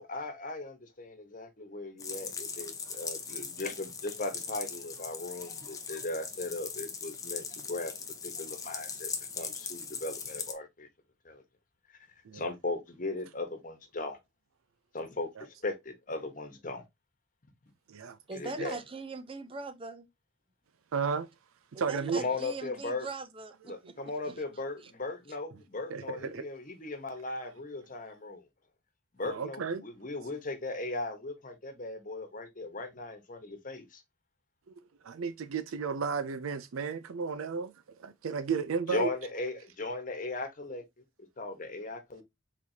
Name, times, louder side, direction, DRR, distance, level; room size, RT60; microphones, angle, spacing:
voice 1, 0.0-7.9 8.2-10.9 11.2-11.4 11.9-12.0 12.3-14.2 14.9-16.8 18.3-18.8 22.1-23.1 23.6-28.4 29.1-34.0 38.9-40.8 41.4-42.2, left 2 dB, 40° left, 1.2 m, -38 dB
sound 1, 2.0-10.5, left 5 dB, 15° left, 0.7 m, -40 dB
voice 2, 18.3-20.1 21.7-23.5 24.3-24.4, right 3 dB, 25° right, 0.6 m, -40 dB
voice 3, 20.9-21.3 21.8-22.2 25.9-26.4 29.2-29.8 34.7-37.7 38.0-39.1, right 5 dB, 85° right, 0.5 m, -33 dB
4.6 x 4.1 x 2.7 m
head